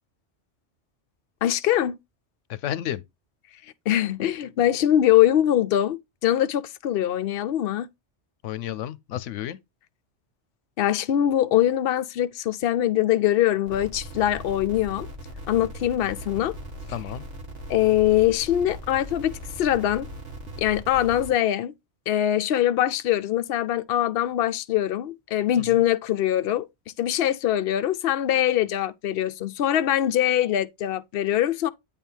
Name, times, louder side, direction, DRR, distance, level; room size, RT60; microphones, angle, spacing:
voice 1, 1.4-2.0 3.9-7.9 10.8-15.1 15.5-16.5 17.7-19.3 19.6-20.1 20.6-21.7 22.1-26.7 27.0-31.7, left 12 dB, 60° left, 0.8 m, -23 dB
voice 2, 2.5-3.0 8.4-9.6 16.9-17.2 25.6-25.8, left 12 dB, 85° left, 0.9 m, -32 dB
sound 1, 13.7-21.3, equal, 75° right, 2.3 m, -39 dB
8.8 x 3.5 x 4.5 m
omnidirectional pair, 1.2 m